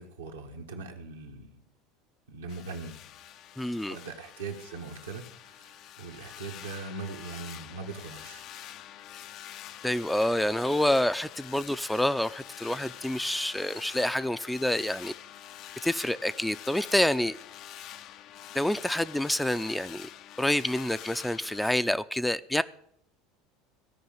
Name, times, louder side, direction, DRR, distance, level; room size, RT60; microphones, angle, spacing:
voice 1, 0.0-1.6 2.3-3.0 3.9-8.5, right 4 dB, 85° right, 1.7 m, -41 dB
sound 1, 2.5-21.7, left 11 dB, 55° left, 0.6 m, -46 dB
voice 2, 3.6-4.0 9.8-15.1 15.8-17.4 18.5-20.1 20.4-22.6, left 1 dB, 5° left, 0.5 m, -27 dB
16.0 x 5.4 x 8.9 m
hypercardioid pair, 75°, 0 cm